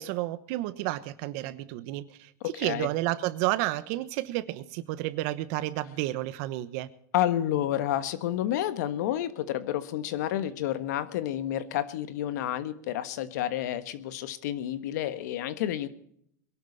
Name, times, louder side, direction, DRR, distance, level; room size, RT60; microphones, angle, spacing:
voice 1, 0.0-2.3 2.6-6.9, right 16 dB, 60° right, 15 dB, 1.1 m, -31 dB
voice 2, 2.5-2.9 7.1-15.9, left 12 dB, 70° left, 12 dB, 1.4 m, -30 dB
22.5 x 12.0 x 4.1 m, 0.69 s
supercardioid pair, 130°, 10 cm